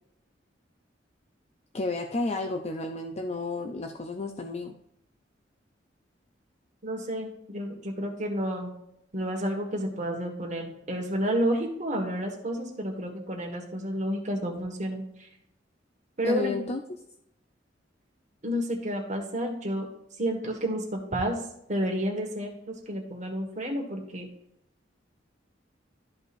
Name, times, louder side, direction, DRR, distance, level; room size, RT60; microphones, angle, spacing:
voice 1, 1.7-4.7 16.2-17.0, left 3 dB, 35° left, 4 dB, 0.5 m, -32 dB
voice 2, 6.8-8.7 9.1-15.0 16.2-16.5 18.4-19.9 20.2-21.4 21.7-22.5 22.9-24.3, equal, 40° right, 2 dB, 1.6 m, -30 dB
12.5 x 5.2 x 2.5 m, 0.78 s
head